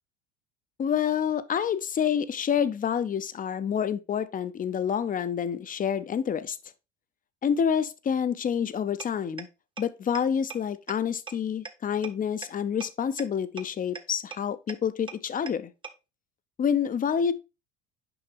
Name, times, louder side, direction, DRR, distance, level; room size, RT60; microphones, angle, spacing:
voice 1, 0.8-6.6 7.4-9.5 9.8-15.7 16.6-17.3, left 8 dB, 25° left, 0.5 m, -28 dB
sound 1, 9.0-9.1 9.4-9.5 9.8-9.9 10.1-10.2 10.5-10.6 10.9-11.0 11.3-11.4 11.6-11.7 12.0-12.1 12.4-12.5 12.8-12.9 13.2-13.3 13.6-13.7 13.9-14.0 14.3-14.4 14.7-14.8 15.1-15.2 15.5-15.6 15.8-15.9, right 5 dB, 15° right, 0.8 m, -37 dB
6.8 x 5.1 x 3.3 m
hypercardioid pair, 75°, 35 cm